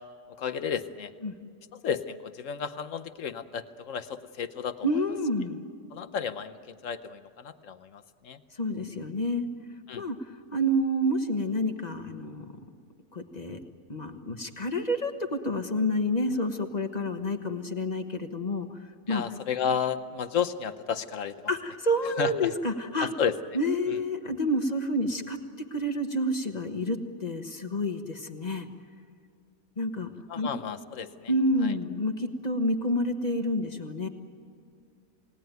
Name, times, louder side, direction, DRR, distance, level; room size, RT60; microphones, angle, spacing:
voice 1, 0.4-1.1 1.7-4.9 5.9-8.4 9.9-10.0 19.1-21.5 22.2-22.5 23.0-23.3 30.3-31.3 31.6-31.7, left 7 dB, 55° left, 12 dB, 1.1 m, -32 dB
voice 2, 4.8-5.6 8.6-9.4 9.9-12.5 13.1-13.6 13.9-18.8 19.1-19.2 21.5-23.1 23.5-28.7 29.8-30.5 31.3-34.1, equal, 30° left, 6 dB, 1.3 m, -29 dB
28.0 x 18.5 x 9.3 m, 2.4 s
omnidirectional pair, 1.7 m